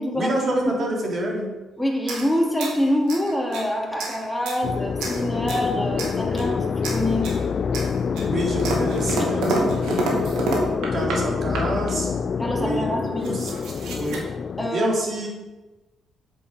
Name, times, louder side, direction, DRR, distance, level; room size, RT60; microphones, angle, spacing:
voice 1, 0.1-1.5 8.2-10.5 10.9-12.1 12.6-12.9 13.3-13.5 13.9-14.3 14.7-15.3, right 1 dB, 45° right, -2 dB, 3.7 m, -27 dB
voice 2, 1.8-6.6 6.9-7.3 9.2-9.3 12.4-13.4 14.6-14.9, left 1 dB, ahead, -2 dB, 2.5 m, -25 dB
sound 1, 2.0-3.7 4.0-4.6 5.0-5.7 6.0-6.5 6.8-7.4 7.7-11.2 11.5-12.0 12.7-12.8 13.0-14.2, right 3 dB, 85° right, 2.5 m, -29 dB
sound 2, 4.6-14.7, left 6 dB, 50° left, 0.4 m, -26 dB
8.2 x 7.5 x 6.7 m, 1.1 s
cardioid pair, 90°, 0 cm